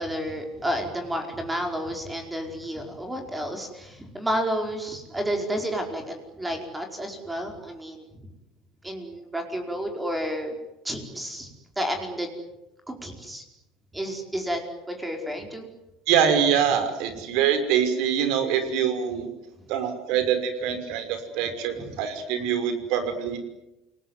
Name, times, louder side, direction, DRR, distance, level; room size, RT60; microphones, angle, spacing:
voice 1, 0.0-8.3 8.8-10.6 10.8-11.5 11.8-12.3 12.9-13.4 13.9-14.6 14.9-15.7, equal, 10° right, 3 dB, 4.9 m, -31 dB
voice 2, 16.1-19.3 19.7-23.4, right 8 dB, 65° right, 8 dB, 5.6 m, -24 dB
29.0 x 19.5 x 9.7 m, 0.95 s
cardioid pair, 140°, 0 cm